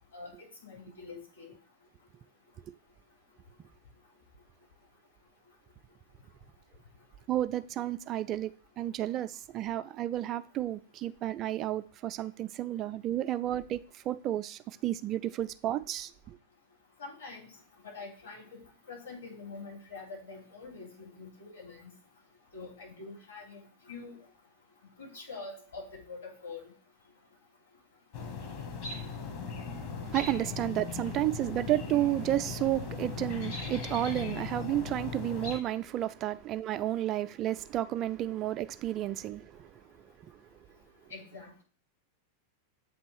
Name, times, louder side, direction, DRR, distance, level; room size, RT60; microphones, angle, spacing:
voice 1, 0.6-1.5 17.0-17.5 17.8-18.6 18.9-21.9 22.5-23.6 23.9-24.2 25.0-26.7 41.1-41.6, left 4 dB, 70° left, 3.6 m, -45 dB
voice 2, 7.3-8.5 8.8-16.4 30.1-39.9 40.2-40.3, right 13 dB, 35° right, 0.4 m, -32 dB
sound 1, 28.1-35.6, left 5 dB, 45° left, 1.3 m, -38 dB
7.8 x 3.0 x 4.5 m
figure-of-eight pair, 90°, 0 cm